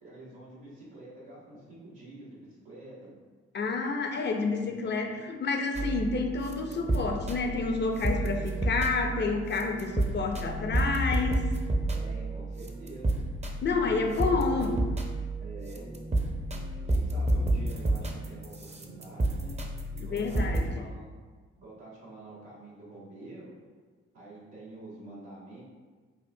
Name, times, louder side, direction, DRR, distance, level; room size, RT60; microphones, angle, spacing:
voice 1, 0.0-3.1 4.5-5.1 8.1-8.4 11.9-13.1 13.7-14.7 15.4-15.9 16.8-19.6 19.9-21.1 21.5-23.5 24.1-25.6, right 2 dB, 90° right, -8 dB, 1.5 m, -47 dB
voice 2, 3.5-11.5 13.6-14.9 20.1-20.9, left 4 dB, 35° left, 4 dB, 0.6 m, -29 dB
sound 1, 5.7-20.6, right 1 dB, 20° right, 0.6 m, -31 dB
5.6 x 2.4 x 2.7 m, 1.4 s
hypercardioid pair, 50°, 29 cm